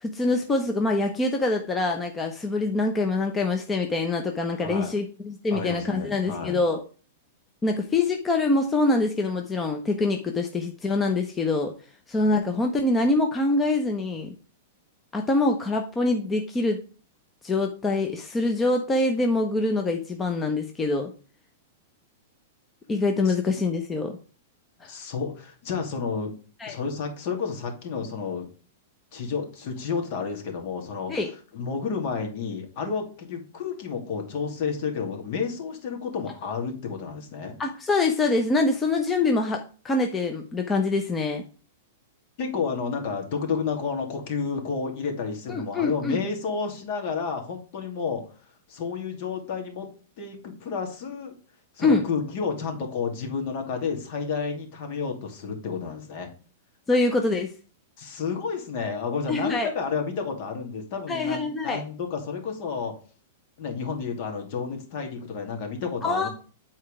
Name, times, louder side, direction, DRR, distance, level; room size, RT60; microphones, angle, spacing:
voice 1, 0.0-6.8 7.6-11.7 12.1-14.3 15.1-16.8 17.4-21.1 22.9-24.1 24.8-24.9 26.6-26.8 31.1-31.3 37.6-41.4 45.5-46.2 51.8-52.0 56.9-57.5 59.3-59.7 61.1-61.8 66.0-66.3, left 2 dB, 20° left, 4 dB, 1.0 m, -25 dB
voice 2, 4.6-4.9 5.5-6.6 23.2-23.3 24.8-26.3 26.7-28.5 29.1-31.1 31.5-37.6 42.4-48.3 48.7-49.9 50.2-51.3 51.8-56.3 58.0-63.0 63.6-66.3, left 5 dB, 55° left, 3 dB, 2.6 m, -31 dB
8.5 x 4.5 x 4.9 m, 0.38 s
hypercardioid pair, 110°, 0 cm